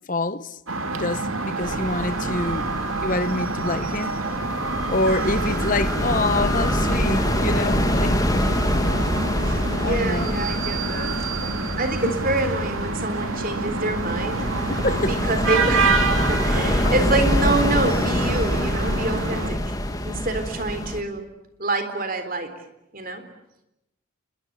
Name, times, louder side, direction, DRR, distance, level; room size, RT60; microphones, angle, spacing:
voice 1, 0.1-0.6 0.9-2.7 3.0-4.1 4.9-8.3 9.8-10.3 12.0-12.1 14.7-15.2 16.8-16.9, left 2 dB, 40° left, 1.0 m, -26 dB
sound 1, 0.7-19.5, right 3 dB, 80° right, 2.6 m, -27 dB
sound 2, 1.6-21.0, left 1 dB, 15° left, 2.3 m, -26 dB
voice 2, 9.4-11.2 11.8-14.5 14.9-19.7 20.0-21.2 21.6-22.5 22.9-23.2, right 2 dB, 40° right, 3.8 m, -27 dB
29.0 x 22.0 x 8.7 m
head